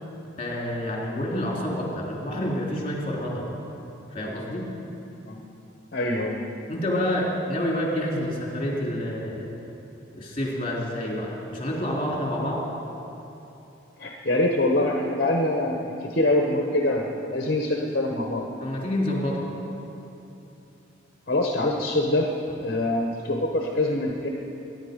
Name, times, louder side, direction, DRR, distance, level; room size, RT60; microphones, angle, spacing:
voice 1, 0.4-3.6 4.1-4.7 6.7-9.5 10.1-12.6 18.6-19.5, left 1 dB, 30° left, -2 dB, 3.2 m, -28 dB
voice 2, 5.9-6.4 14.0-18.4 21.3-22.3 22.6-24.3, left 1 dB, 50° left, 1 dB, 1.1 m, -24 dB
23.0 x 10.5 x 5.2 m, 2.9 s
head